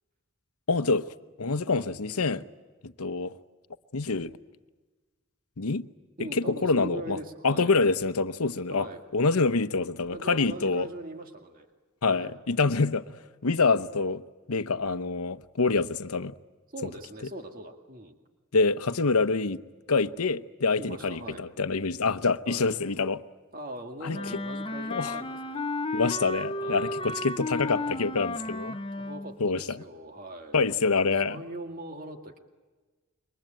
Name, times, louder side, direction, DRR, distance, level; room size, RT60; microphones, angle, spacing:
voice 1, 0.7-1.0 1.4-2.4 2.8-3.3 3.9-4.3 5.6-5.9 6.3-7.2 7.4-8.9 9.1-10.9 12.0-14.2 14.5-16.3 18.5-19.6 19.9-23.2 24.0-24.2 24.9-25.2 25.9-28.8 29.4-29.8 30.5-31.4, left 4 dB, 90° left, 0.9 m, -26 dB
voice 2, 6.2-7.7 8.7-9.0 10.1-11.7 12.1-12.3 16.7-18.2 20.8-21.5 22.5-22.7 23.5-25.6 26.6-27.0 28.9-30.6 31.2-32.4, right 1 dB, 40° right, 2.1 m, -41 dB
Wind instrument woodwind instrument, 24.1-29.4, left 2 dB, 25° left, 0.8 m, -33 dB
27.5 x 23.5 x 9.1 m
head